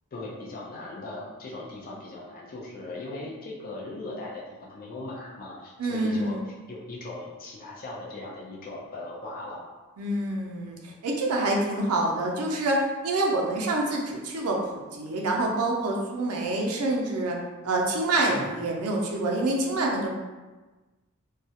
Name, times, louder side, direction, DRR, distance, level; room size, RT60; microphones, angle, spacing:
voice 1, 0.1-9.6 18.3-18.6, left 2 dB, 40° left, -4 dB, 0.4 m, -39 dB
voice 2, 5.8-6.4 10.0-17.4 17.6-20.1, right 2 dB, 85° right, 0 dB, 0.5 m, -27 dB
2.3 x 2.0 x 2.7 m, 1.2 s
head